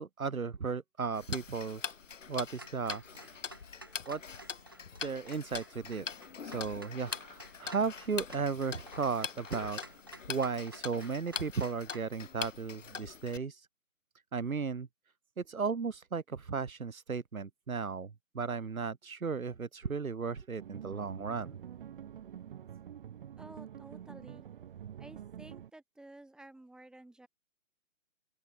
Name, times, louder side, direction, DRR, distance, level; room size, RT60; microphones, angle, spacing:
voice 1, 0.0-2.0 2.3-3.6 4.1-4.2 4.5-4.6 5.0-6.0 6.4-10.0 10.3-13.7 14.3-14.9 15.4-21.6, right 5 dB, 90° right, 1.6 m, -35 dB
Tick-tock, 1.1-13.4, left 6 dB, 65° left, 2.5 m, -43 dB
Clock, 2.5-12.1, right 1 dB, 15° right, 0.5 m, -53 dB
sound 1, 20.6-25.7, right 9 dB, 40° right, 3.9 m, -47 dB
voice 2, 23.4-24.5 25.0-27.3, right 2 dB, ahead, 5.6 m, -53 dB
open air
figure-of-eight pair, 155°, 41 cm